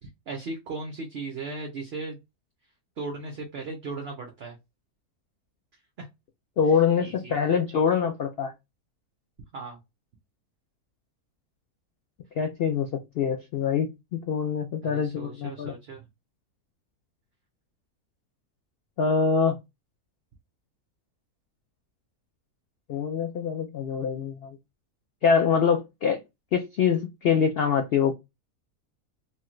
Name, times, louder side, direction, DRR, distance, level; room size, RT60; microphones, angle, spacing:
voice 1, 0.0-2.2 3.0-4.6 6.0-6.1 6.7-7.6 9.5-9.8 14.8-16.1, right 3 dB, 55° right, 0.8 m, -37 dB
voice 2, 6.6-8.5 12.4-15.7 19.0-19.6 22.9-24.5 25.2-26.2 26.5-28.1, left 6 dB, 85° left, 0.5 m, -24 dB
3.2 x 2.3 x 3.0 m
omnidirectional pair, 1.6 m